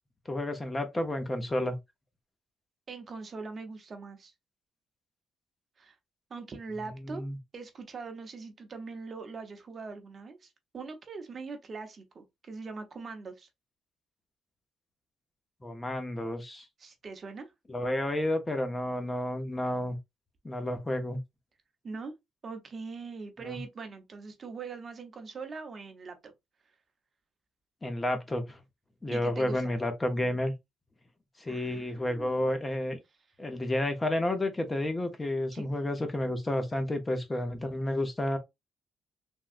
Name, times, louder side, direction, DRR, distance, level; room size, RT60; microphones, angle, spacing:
voice 1, 0.3-1.8 7.0-7.4 15.6-16.7 17.7-20.0 20.4-21.2 23.4-23.6 27.8-28.6 29.0-30.5 31.4-33.0 33.4-38.4, left 1 dB, 20° left, 0.8 m, -31 dB
voice 2, 2.9-4.3 5.8-6.0 6.3-7.2 7.5-13.5 16.8-17.5 21.8-22.1 22.4-26.2 29.1-29.7 31.5-32.4 35.5-35.7, right 4 dB, 45° right, 0.8 m, -42 dB
3.5 x 2.3 x 2.5 m
cardioid pair, 90°, 0 cm